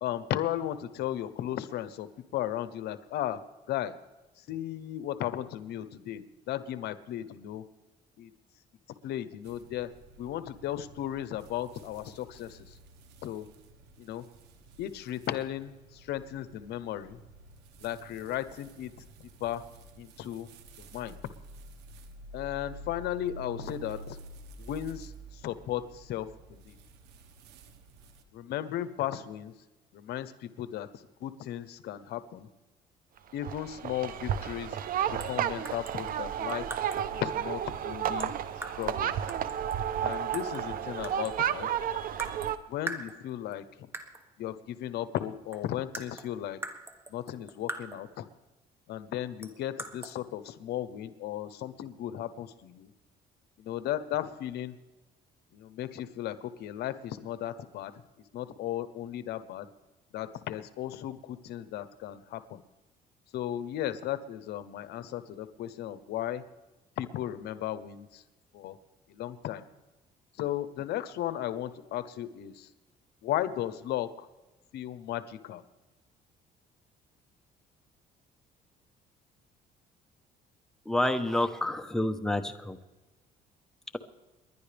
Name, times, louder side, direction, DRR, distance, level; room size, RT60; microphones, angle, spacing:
voice 1, 0.0-3.4 3.7-3.9 4.4-7.6 8.2-8.3 9.0-9.9 10.2-12.8 13.2-13.5 14.0-14.3 14.8-17.2 17.8-18.9 19.4-19.6 20.0-20.5 20.8-21.2 22.3-24.2 24.6-26.8 28.3-29.5 29.9-30.9 31.2-32.5 33.3-34.8 35.1-36.7 37.1-38.3 38.8-39.1 40.0-41.7 42.7-43.9 44.4-46.6 47.1-48.2 48.9-52.9 53.6-54.8 55.5-57.9 58.3-59.7 60.1-62.6 63.3-66.4 67.0-68.2 68.5-68.8 69.1-69.6 70.4-72.7 73.2-74.3 74.7-75.6, left 12 dB, 75° left, 13 dB, 0.9 m, -35 dB
sound 1, 9.4-28.2, right 1 dB, 90° right, 1.4 m, -50 dB
sound 2, 33.4-42.6, right 9 dB, 60° right, 0.8 m, -32 dB
sound 3, 35.2-35.4 35.6-37.1 38.2-39.0 39.3-40.7 41.0-41.6 42.2-42.6 42.9-43.5 43.9-44.3 45.2-45.3 45.5-48.2 49.4-50.1, right 1 dB, 15° right, 1.4 m, -42 dB
voice 2, 80.9-82.8, left 1 dB, 5° left, 7 dB, 1.0 m, -28 dB
30.0 x 11.0 x 3.4 m, 1.1 s
cardioid pair, 110°, 17 cm